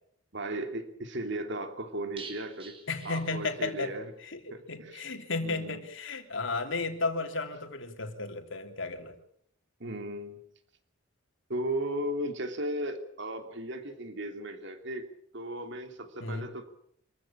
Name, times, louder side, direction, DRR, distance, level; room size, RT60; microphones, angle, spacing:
voice 1, 0.3-2.8 3.0-4.1 4.5-5.1 5.4-5.9 9.8-10.4 11.5-15.1 15.3-16.7, right 1 dB, 60° right, 7 dB, 2.9 m, -36 dB
sound 1, 2.2-3.9 4.2-4.3 4.6-4.7, right 5 dB, 25° right, 3.7 m, -48 dB
voice 2, 2.9-3.9 4.2-9.1 16.2-16.5, left 3 dB, 65° left, 6 dB, 3.1 m, -34 dB
25.5 x 15.0 x 8.7 m, 0.69 s
head